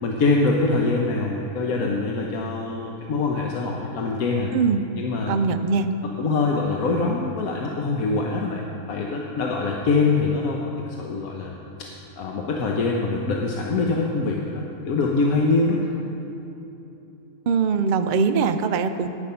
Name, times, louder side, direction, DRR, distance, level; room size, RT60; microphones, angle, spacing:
voice 1, 0.0-4.5 5.0-5.4 6.2-11.5 11.8-11.9 12.2-15.9, left 3 dB, 85° left, -1 dB, 1.3 m, -24 dB
voice 2, 4.5-4.8 5.3-5.9 17.5-19.1, right 5 dB, 85° right, 8 dB, 0.4 m, -21 dB
10.5 x 10.0 x 5.6 m, 3.0 s
omnidirectional pair, 1.5 m